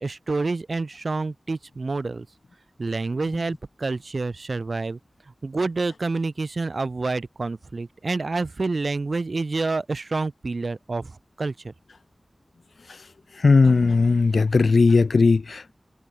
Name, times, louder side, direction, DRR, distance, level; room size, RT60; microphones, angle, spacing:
voice 1, 0.0-2.3 2.8-5.0 5.4-11.7, right 3 dB, 70° right, 2.5 m, -28 dB
voice 2, 13.4-15.7, left 4 dB, 90° left, 0.4 m, -17 dB
wide cardioid pair, 55°, 0 cm